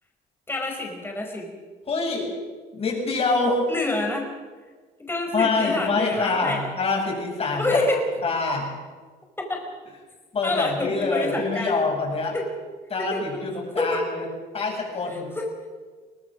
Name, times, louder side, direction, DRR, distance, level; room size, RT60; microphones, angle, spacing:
voice 1, 0.5-1.5 3.7-4.3 5.0-6.6 7.6-8.0 9.5-9.6 10.4-11.8 12.3-12.5 13.0-13.4 13.8-14.0 15.1-15.5, left 2 dB, 15° left, 1 dB, 5.1 m, -27 dB
voice 2, 1.9-2.3 2.7-3.6 5.3-8.7 10.3-12.4 12.9-14.3 14.5-15.3, left 3 dB, 35° left, 0 dB, 7.6 m, -25 dB
23.0 x 19.0 x 6.3 m, 1.4 s
cardioid pair, 110°, 17 cm